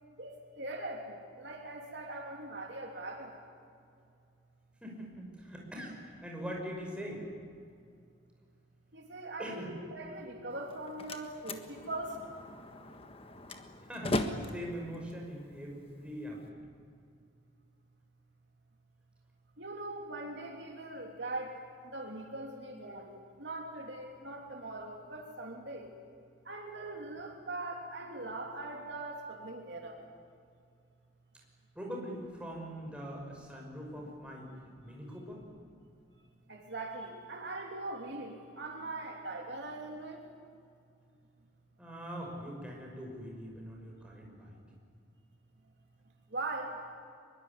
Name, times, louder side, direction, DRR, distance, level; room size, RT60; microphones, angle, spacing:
voice 1, 0.2-3.3 8.9-12.2 19.6-21.5 21.9-23.1 23.4-25.9 26.5-30.0 36.5-40.2 46.3-46.8, right 2 dB, 60° right, 1 dB, 3.1 m, -41 dB
voice 2, 4.8-7.2 9.4-9.7 13.9-16.5 31.8-34.5 34.8-35.4 41.8-44.6, equal, 5° right, -1 dB, 5.8 m, -42 dB
Slam, 10.5-16.5, left 1 dB, 30° left, 1.5 m, -39 dB
23.5 x 22.5 x 9.7 m, 2.4 s
head